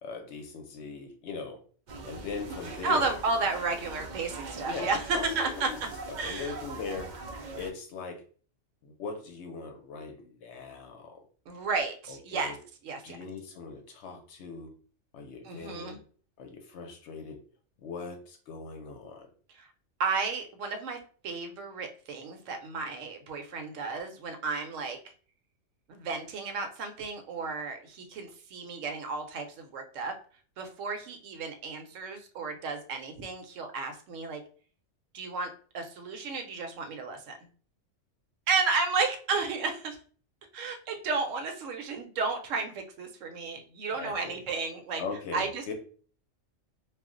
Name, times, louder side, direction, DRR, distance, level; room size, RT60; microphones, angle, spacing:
voice 1, 0.0-1.6 2.0-3.1 4.6-5.8 6.2-7.1 7.5-8.2 8.8-11.3 12.1-12.6 13.0-14.7 15.1-16.0 16.4-17.4 17.8-19.3 43.9-44.4 45.0-45.7, left 4 dB, 65° left, 4 dB, 0.8 m, -40 dB
sound 1, 1.9-7.7, right 3 dB, 60° right, 0.4 m, -42 dB
voice 2, 2.8-5.7 6.2-6.5 11.5-12.6 12.8-13.2 15.4-16.0 19.6-19.7 20.0-25.0 25.9-30.1 30.6-34.4 35.1-37.5 38.5-40.0 40.5-45.0 45.3-45.7, right 4 dB, 75° right, 5 dB, 1.0 m, -32 dB
2.4 x 2.0 x 3.6 m, 0.42 s
omnidirectional pair, 1.3 m